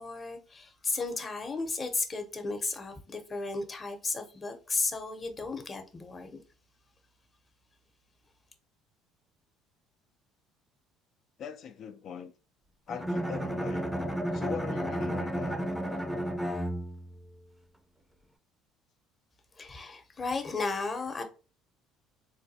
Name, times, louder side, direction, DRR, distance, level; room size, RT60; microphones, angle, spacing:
voice 1, 0.0-6.4 19.6-21.2, left 3 dB, 30° left, 0.8 m, -34 dB
voice 2, 11.4-12.3 12.9-14.0 14.3-15.7, left 7 dB, 55° left, 0.4 m, -41 dB
Bowed string instrument, 12.9-17.2, equal, ahead, 0.5 m, -32 dB
3.8 x 2.3 x 2.7 m
hypercardioid pair, 70°, 0 cm